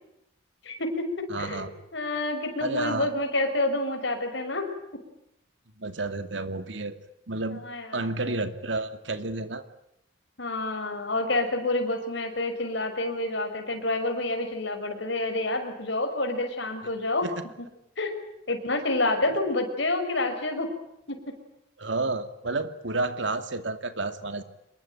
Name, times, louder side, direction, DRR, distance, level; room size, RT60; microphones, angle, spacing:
voice 1, 0.6-1.7 1.9-4.7 7.6-8.1 10.4-17.3 18.0-18.1 18.5-20.7 21.1-21.3, left 2 dB, 60° left, 5 dB, 6.3 m, -28 dB
voice 2, 1.3-1.7 2.6-3.1 5.8-7.0 7.3-7.6 7.9-9.6 17.2-17.3 19.3-19.4 21.8-24.4, right 3 dB, 65° right, 9 dB, 2.5 m, -30 dB
27.0 x 22.5 x 9.2 m, 0.80 s
head